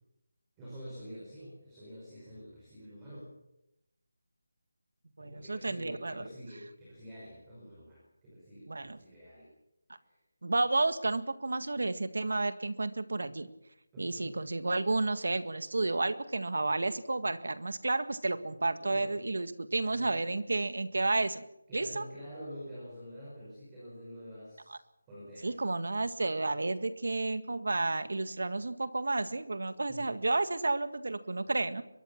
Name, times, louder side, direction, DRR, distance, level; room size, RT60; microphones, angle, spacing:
voice 1, 0.6-3.3 5.2-9.5 10.0-10.2 13.9-14.4 18.8-19.2 19.9-20.3 21.7-24.8 25.1-25.6 29.9-30.1, equal, 10° right, -7 dB, 5.7 m, -47 dB
voice 2, 5.2-6.3 8.7-9.0 10.4-13.5 14.0-21.4 21.7-22.0 24.7-24.8 25.4-31.8, right 2 dB, 60° right, 11 dB, 1.8 m, -31 dB
23.5 x 21.5 x 6.0 m, 0.86 s
figure-of-eight pair, 180°, 0 cm